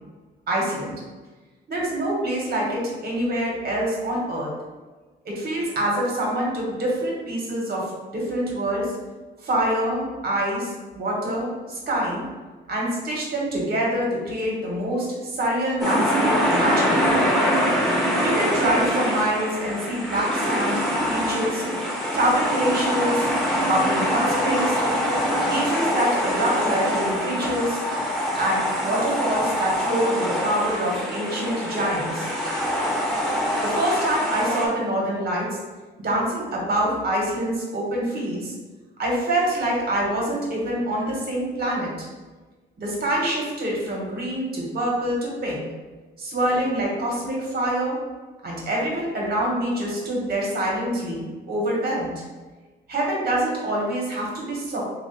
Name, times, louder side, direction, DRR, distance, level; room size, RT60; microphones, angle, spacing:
voice 1, 0.5-0.9 1.7-4.5 5.2-8.9 9.4-12.3 12.7-17.2 18.2-21.6 22.1-23.3 23.6-24.8 25.4-27.8 28.3-32.3 33.6-35.6 36.0-38.5 39.0-42.1 42.8-45.6 46.2-48.0 48.4-52.2 52.9-54.8, right 1 dB, 50° right, -3 dB, 1.3 m, -25 dB
sound 1, 15.8-34.7, equal, ahead, 1.0 m, -24 dB
3.0 x 2.5 x 3.9 m, 1.3 s
cardioid pair, 90°, 20 cm